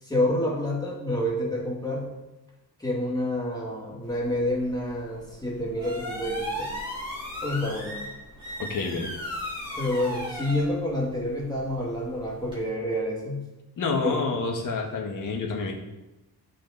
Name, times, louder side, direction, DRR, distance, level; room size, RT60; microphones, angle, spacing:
voice 1, 0.0-2.1 2.8-6.7 7.4-8.0 9.8-13.4 13.9-14.2, left 1 dB, 10° left, -3 dB, 1.7 m, -28 dB
sound 1, 4.0-12.6, equal, 10° right, 2.8 m, -37 dB
voice 2, 8.6-9.1 13.8-15.7, left 4 dB, 50° left, 0 dB, 1.7 m, -28 dB
13.5 x 5.0 x 4.1 m, 1.0 s
wide cardioid pair, 175°, 39 cm